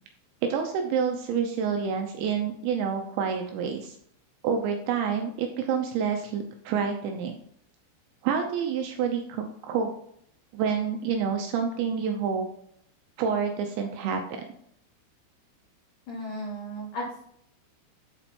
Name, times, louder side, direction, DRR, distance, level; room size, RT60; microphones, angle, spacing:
voice 1, 0.4-4.0 4.4-7.3 8.2-9.9 10.5-12.5 13.2-14.2, right 6 dB, 85° right, 4 dB, 2.6 m, -28 dB
voice 2, 16.1-17.2, equal, 65° left, -5 dB, 2.2 m, -35 dB
8.1 x 4.5 x 4.2 m, 0.70 s
omnidirectional pair, 6.0 m